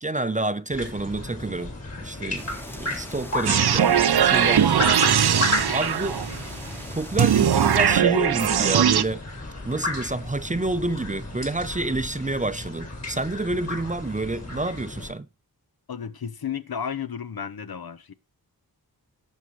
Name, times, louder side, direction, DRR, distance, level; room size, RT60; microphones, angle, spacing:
voice 1, 0.0-5.0 5.7-6.2 6.9-9.2 9.7-15.3, right 2 dB, 20° right, 0.6 m, -28 dB
sound 1, 0.7-15.1, left 2 dB, 40° left, 3.1 m, -33 dB
sound 2, 2.3-7.9, equal, 5° left, 1.0 m, -42 dB
sound 3, 3.5-6.4 7.2-9.0, right 8 dB, 80° right, 0.7 m, -20 dB
voice 2, 15.9-18.1, left 7 dB, 70° left, 0.9 m, -33 dB
17.5 x 6.5 x 3.1 m
wide cardioid pair, 80°, 38 cm